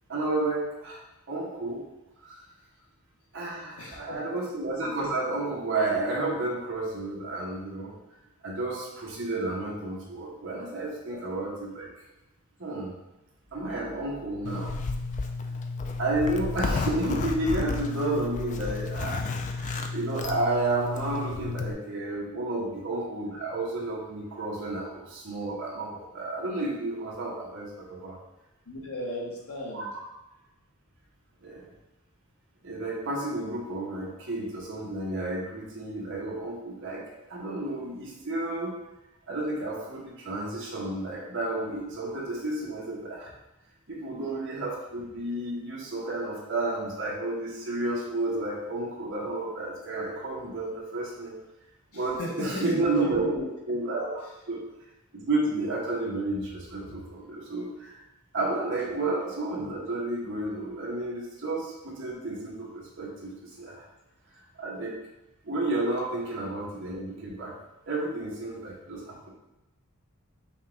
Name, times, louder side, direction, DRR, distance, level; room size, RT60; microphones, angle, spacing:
voice 1, 0.1-1.0 1.3-1.8 2.2-2.4 3.3-7.9 8.4-11.9 12.6-12.9 13.5-14.7 16.0-28.2 29.7-29.8 31.4-31.7 32.6-37.0 37.3-38.7 39.3-43.3 43.9-51.4 51.9-53.2 53.7-54.2 54.5-54.6 55.1-57.9 58.3-63.8 64.6-65.0 65.4-67.6 67.9-69.3, right 2 dB, 55° right, -4 dB, 1.1 m, -31 dB
voice 2, 3.8-4.4 11.1-11.2 22.5-22.7 28.7-29.9 51.9-53.5, left 1 dB, 75° left, -3 dB, 1.2 m, -36 dB
Zipper (clothing), 14.4-21.7, left 3 dB, 35° left, 0.3 m, -32 dB
5.6 x 2.4 x 3.5 m, 0.97 s
head